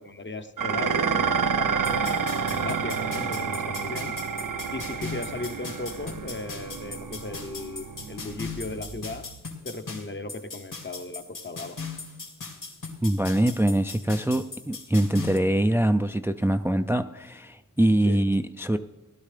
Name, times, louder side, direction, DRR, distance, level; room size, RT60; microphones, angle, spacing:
voice 1, 0.0-2.2 2.5-4.1 4.7-9.3 9.6-11.8 18.0-18.2, left 3 dB, 35° left, 9 dB, 0.9 m, -36 dB
Dishes pots and pans, 0.6-9.4, right 6 dB, 75° right, 0.7 m, -29 dB
sound 1, 1.8-15.4, left 4 dB, 70° left, 2.5 m, -39 dB
voice 2, 13.0-18.8, right 1 dB, 5° right, 8 dB, 0.4 m, -23 dB
17.0 x 11.5 x 3.3 m, 1.1 s
wide cardioid pair, 60°, 33 cm